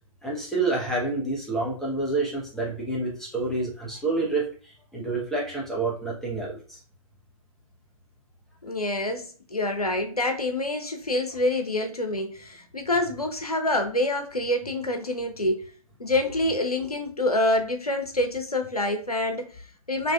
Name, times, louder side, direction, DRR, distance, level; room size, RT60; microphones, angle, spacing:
voice 1, 0.2-6.8, right 3 dB, ahead, -4 dB, 1.2 m, -28 dB
voice 2, 8.6-15.7 16.0-20.1, left 1 dB, 90° left, 6 dB, 0.9 m, -26 dB
4.9 x 3.2 x 2.4 m, 0.42 s
figure-of-eight pair, 125°, 19 cm